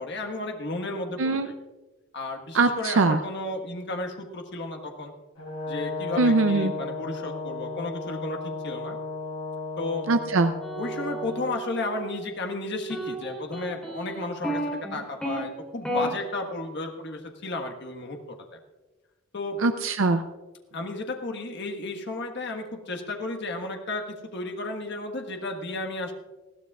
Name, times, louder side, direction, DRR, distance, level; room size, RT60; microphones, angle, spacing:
voice 1, 0.0-1.5 2.1-5.1 5.7-9.0 9.8-10.1 10.8-14.6 14.9-18.2 18.5-18.6 19.3-19.6 20.7-26.1, left 2 dB, 55° left, 3 dB, 1.5 m, -33 dB
voice 2, 2.5-3.2 6.2-6.7 10.1-10.5 19.6-20.2, right 3 dB, 65° right, 8 dB, 0.5 m, -22 dB
Brass instrument, 5.4-11.5, left 3 dB, 75° left, 4.4 m, -34 dB
sound 1, 10.6-12.2 12.9-15.4 15.8-16.1, right 1 dB, 5° left, 3.2 m, -33 dB
20.5 x 14.5 x 2.4 m, 1.2 s
head